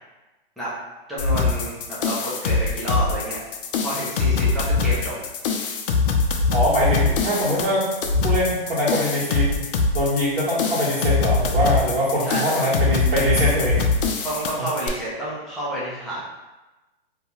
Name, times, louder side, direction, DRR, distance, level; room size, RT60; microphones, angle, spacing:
voice 1, 1.1-3.4 3.8-5.1 12.2-12.7 14.2-16.2, right 1 dB, ahead, -11 dB, 0.3 m, -29 dB
sound 1, 1.2-14.9, left 4 dB, 60° left, 0.5 m, -23 dB
voice 2, 6.5-7.8 8.2-9.6 9.9-13.8 14.6-14.7, equal, 85° right, -9 dB, 1.1 m, -22 dB
2.4 x 2.2 x 2.9 m, 1.1 s
hypercardioid pair, 135°, 30 cm